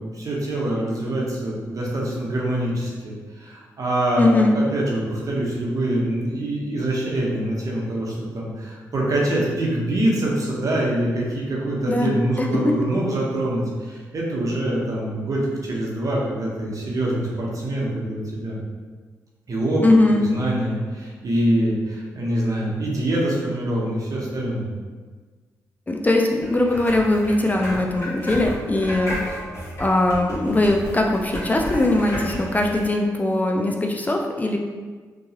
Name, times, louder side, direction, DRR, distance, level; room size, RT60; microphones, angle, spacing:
voice 1, 0.0-18.6 19.5-19.8 20.1-24.7, right 1 dB, 50° right, -4 dB, 0.9 m, -25 dB
voice 2, 4.2-4.6 11.9-12.1 12.4-12.6 19.8-20.3 25.9-29.2 29.8-34.6, left 2 dB, 20° left, 1 dB, 0.4 m, -20 dB
sound 1, 26.4-32.9, equal, 40° left, 1.3 m, -32 dB
2.8 x 2.3 x 2.8 m, 1.4 s
supercardioid pair, 45°, 7 cm